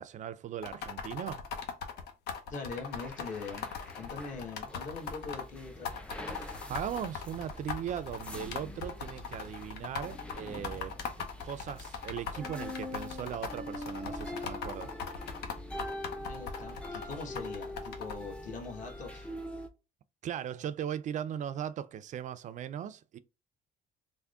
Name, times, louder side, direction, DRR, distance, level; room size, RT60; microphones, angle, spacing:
voice 1, 0.0-1.5 6.3-14.9 20.2-23.2, right 9 dB, 45° right, 0.4 m, -39 dB
sound 1, 0.6-5.4 5.8-18.1, left 6 dB, 75° left, 0.7 m, -40 dB
voice 2, 2.5-6.0 16.2-19.3, left 4 dB, 50° left, 1.3 m, -42 dB
sound 2, 2.7-19.7, left 1 dB, 5° left, 0.5 m, -44 dB
3.5 x 2.1 x 3.5 m
cardioid pair, 110°, 17 cm